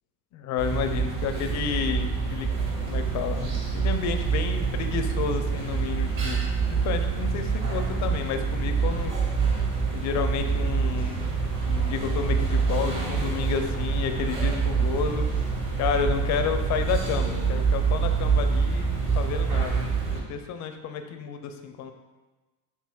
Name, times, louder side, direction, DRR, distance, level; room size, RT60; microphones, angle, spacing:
voice 1, 0.3-2.5 2.8-6.4 6.7-9.1 9.9-11.2 11.6-15.3 15.7-21.9, left 7 dB, 40° left, 7 dB, 0.4 m, -31 dB
sound 1, 0.6-20.2, right 5 dB, 40° right, 1.4 m, -26 dB
sound 2, 2.5-20.1, equal, 10° right, 0.5 m, -42 dB
5.8 x 2.8 x 2.3 m, 1.2 s
supercardioid pair, 95°, 46 cm